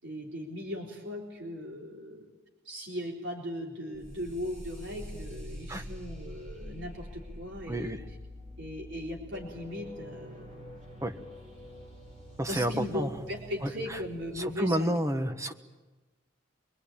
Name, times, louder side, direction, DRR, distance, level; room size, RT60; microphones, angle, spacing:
voice 1, 0.0-2.3 2.6-8.2 8.6-10.7 12.5-14.9 15.2-15.4, left 1 dB, 65° right, -1 dB, 4.0 m, -38 dB
sound 1, 3.9-14.6, equal, 35° right, 6.4 m, -46 dB
voice 2, 12.4-13.1 14.4-15.5, right 1 dB, 15° right, 7 dB, 1.3 m, -30 dB
25.0 x 22.0 x 8.7 m, 1.2 s
head